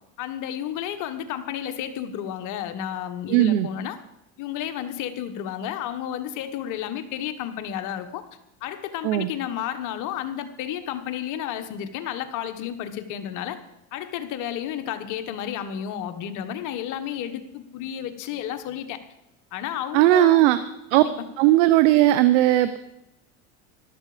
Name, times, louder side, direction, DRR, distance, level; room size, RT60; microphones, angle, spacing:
voice 1, 0.2-4.0 4.4-8.2 8.6-13.6 13.9-19.0 19.5-20.6 20.9-21.3, left 10 dB, 55° left, 9 dB, 1.4 m, -32 dB
voice 2, 3.3-3.7 9.0-9.3 19.9-20.6 20.9-21.0 21.4-22.8, right 14 dB, 80° right, 12 dB, 0.9 m, -17 dB
14.5 x 12.0 x 5.1 m, 0.85 s
supercardioid pair, 110°, 35 cm